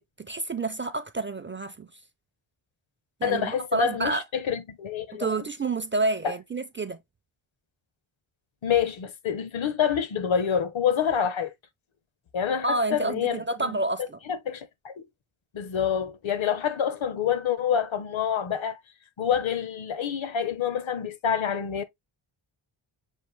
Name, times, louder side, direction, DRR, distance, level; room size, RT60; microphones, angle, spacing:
voice 1, 0.2-1.9 3.2-4.2 5.1-7.0 12.6-14.2, right 2 dB, 25° right, 0.4 m, -29 dB
voice 2, 3.2-5.3 8.6-11.5 12.3-13.8 14.3-15.1 15.5-18.8 19.2-21.8, left 8 dB, 70° left, 0.9 m, -27 dB
6.4 x 2.5 x 3.1 m
wide cardioid pair, 130°, 49 cm